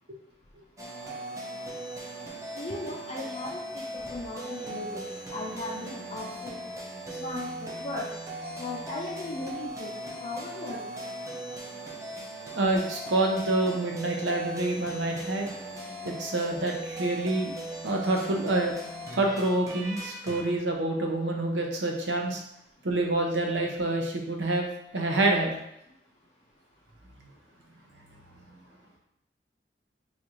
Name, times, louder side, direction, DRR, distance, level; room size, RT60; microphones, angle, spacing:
sound 1, 0.8-20.5, right 1 dB, 20° right, 0.6 m, -39 dB
voice 1, 2.6-3.6 3.9-5.0 5.3-6.6 7.2-8.0 8.6-9.9 10.2-10.8, left 2 dB, 40° left, -5 dB, 0.5 m, -37 dB
voice 2, 12.6-15.5 16.0-17.5 17.8-18.7 19.1-22.4 22.8-24.7 24.9-25.6, right 2 dB, 80° right, 1 dB, 0.7 m, -27 dB
3.9 x 2.5 x 3.0 m, 0.80 s
head